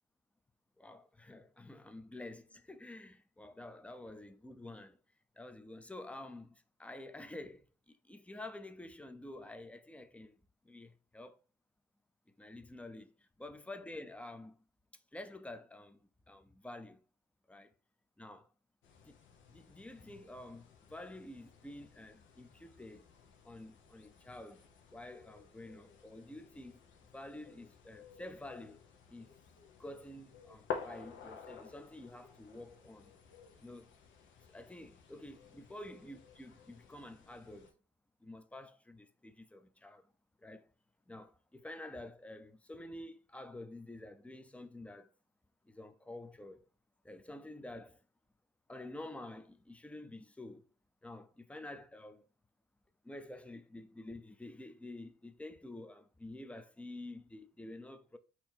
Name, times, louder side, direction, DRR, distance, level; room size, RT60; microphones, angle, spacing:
voice 1, 0.8-5.0 5.4-10.4 10.6-11.4 12.4-14.6 15.1-17.0 17.5-17.7 18.2-18.5 19.1-19.2 19.5-23.1 23.4-24.6 24.9-26.8 27.1-28.8 29.1-29.3 29.8-33.1 33.6-33.9 34.5-37.7 38.2-40.1 40.4-40.7 41.1-45.1 45.6-46.7 47.0-48.0 48.7-50.7 51.0-52.3 53.0-58.2, left 1 dB, 5° left, 0.5 m, -49 dB
sound 1, 18.8-37.7, left 6 dB, 70° left, 0.9 m, -52 dB
4.2 x 2.7 x 4.3 m
cardioid pair, 90°, 20 cm